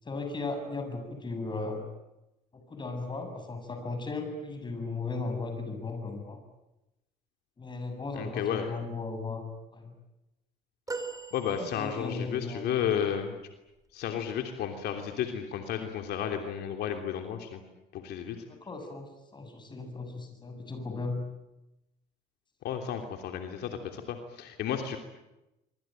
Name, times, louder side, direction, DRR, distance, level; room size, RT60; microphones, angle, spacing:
voice 1, 0.0-1.9 2.5-6.4 7.6-9.5 9.7-9.9 11.6-12.7 18.5-21.2, left 3 dB, 25° left, 6 dB, 7.5 m, -36 dB
voice 2, 8.1-8.7 11.3-13.4 13.9-17.6 17.9-18.4 22.6-25.0, left 8 dB, 75° left, 4 dB, 3.2 m, -32 dB
sound 1, 10.9-12.3 14.7-14.9 16.2-16.3, right 3 dB, 20° right, 4.0 m, -40 dB
25.0 x 24.5 x 9.2 m, 0.95 s
cardioid pair, 110°, 17 cm